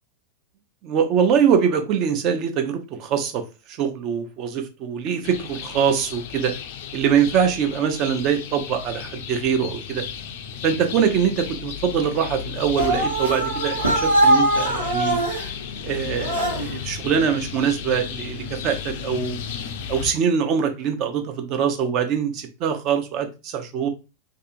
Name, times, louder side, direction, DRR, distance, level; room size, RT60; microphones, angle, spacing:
voice 1, 0.8-3.4 3.7-6.5 6.9-10.0 10.6-15.2 15.8-19.4 19.9-23.9, right 7 dB, 40° right, 6 dB, 0.5 m, -23 dB
sound 1, 5.2-20.1, left 8 dB, 50° left, 0.3 m, -34 dB
sound 2, 12.8-15.5 16.2-16.8, right 1 dB, 75° right, 0.7 m, -21 dB
2.6 x 2.4 x 2.5 m, 0.29 s
figure-of-eight pair, 90°, 0 cm